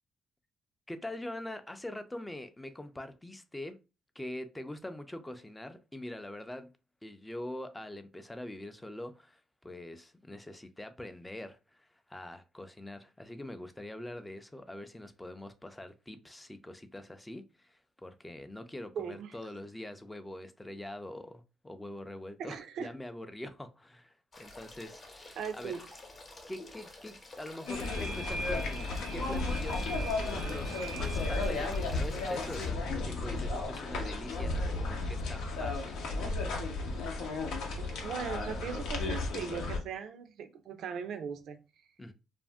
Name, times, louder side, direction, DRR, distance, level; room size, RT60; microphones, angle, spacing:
voice 1, 0.9-3.8 4.2-6.7 7.0-25.7 26.5-30.0 30.2-36.0 42.0-42.1, left 1 dB, 10° left, 0.4 m, -44 dB
voice 2, 19.0-19.4 22.4-22.9 25.4-25.8 37.8-41.9, right 7 dB, 75° right, 0.4 m, -39 dB
sound 1, 24.3-32.7, left 2 dB, 35° left, 0.8 m, -50 dB
sound 2, 27.7-39.8, left 2 dB, 85° left, 0.6 m, -33 dB
2.5 x 2.0 x 3.3 m
cardioid pair, 90°, 0 cm